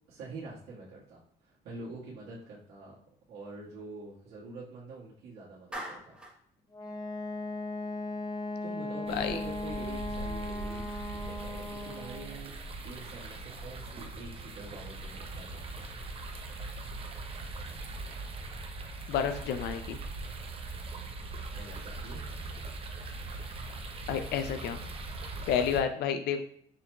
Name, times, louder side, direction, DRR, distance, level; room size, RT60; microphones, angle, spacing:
voice 1, 0.1-3.0 3.3-6.2 8.6-12.5 12.8-15.9 21.5-22.2, right 3 dB, 75° right, -8 dB, 1.6 m, -46 dB
Clapping, 5.7-6.4, right 1 dB, 5° right, 1.1 m, -40 dB
Wind instrument woodwind instrument, 6.7-12.4, left 2 dB, 25° left, 0.6 m, -37 dB
sound 1, 9.1-25.8, right 2 dB, 35° right, 0.6 m, -41 dB
voice 2, 19.1-20.0 24.1-24.8 25.5-26.4, left 8 dB, 75° left, 8 dB, 0.4 m, -30 dB
6.1 x 2.9 x 2.3 m, 0.65 s
cardioid pair, 110°, 17 cm